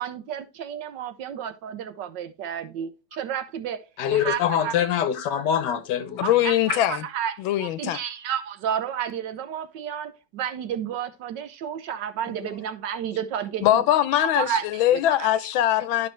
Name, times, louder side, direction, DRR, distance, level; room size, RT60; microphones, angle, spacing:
voice 1, 0.0-3.8 4.1-4.8 6.2-13.8 14.1-14.6 15.1-15.3, right 9 dB, 70° right, 1.3 m, -31 dB
voice 2, 4.0-6.2, left 9 dB, 65° left, 1.2 m, -24 dB
voice 3, 6.2-7.1 7.4-8.0 13.6-16.1, left 12 dB, 85° left, 1.4 m, -22 dB
11.0 x 5.3 x 3.1 m
omnidirectional pair, 2.2 m